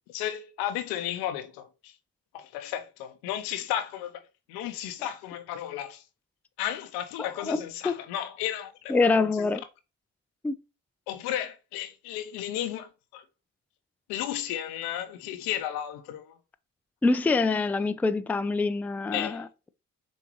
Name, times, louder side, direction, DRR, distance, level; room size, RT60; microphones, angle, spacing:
voice 1, 0.1-1.9 2.3-4.2 4.5-6.0 6.6-9.5 11.1-13.2 14.1-16.3 19.1-19.4, left 11 dB, 85° left, 0.7 m, -34 dB
voice 2, 7.2-7.9 8.9-9.6 10.4-10.6 17.0-19.7, left 3 dB, 5° left, 0.3 m, -26 dB
6.1 x 2.7 x 3.0 m
supercardioid pair, 55°, 38 cm